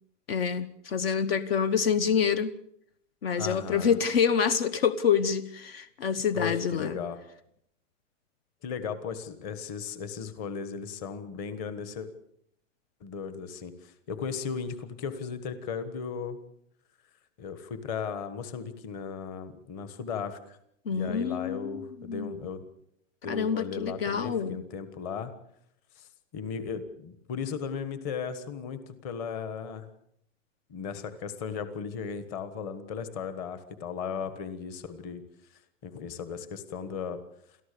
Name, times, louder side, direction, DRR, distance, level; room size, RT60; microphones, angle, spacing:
voice 1, 0.3-2.5 3.2-7.0 20.9-22.3 23.3-24.6, left 7 dB, 50° left, 14 dB, 1.2 m, -27 dB
voice 2, 3.3-4.0 6.3-7.2 8.6-12.1 13.0-16.4 17.4-20.6 20.9-22.6 23.2-25.3 26.0-29.8 30.7-35.2 35.8-37.2, left 6 dB, 20° left, 11 dB, 1.4 m, -36 dB
29.5 x 14.0 x 6.8 m, 0.73 s
supercardioid pair, 180°, 38 cm